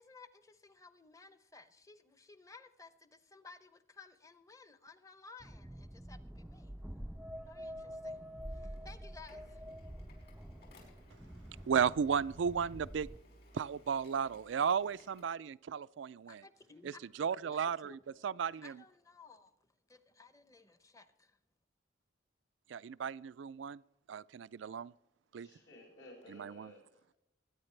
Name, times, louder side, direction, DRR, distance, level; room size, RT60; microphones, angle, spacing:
voice 1, 0.0-6.7 7.5-8.2 8.5-9.6 16.2-17.1 17.4-19.5 19.9-21.4, left 4 dB, 15° left, 0.8 m, -57 dB
sound 1, 5.4-13.2, equal, 5° right, 0.4 m, -47 dB
Printer, 6.2-15.3, left 1 dB, 55° left, 5.0 m, -63 dB
voice 2, 11.7-13.1 13.5-16.4 16.8-16.9 17.2-18.8 22.7-23.8 24.1-24.9 25.3-25.5 26.3-26.7, right 7 dB, 75° right, 0.4 m, -34 dB
voice 3, 25.4-27.2, left 1 dB, 75° left, 6.3 m, -56 dB
22.0 x 9.8 x 3.3 m
head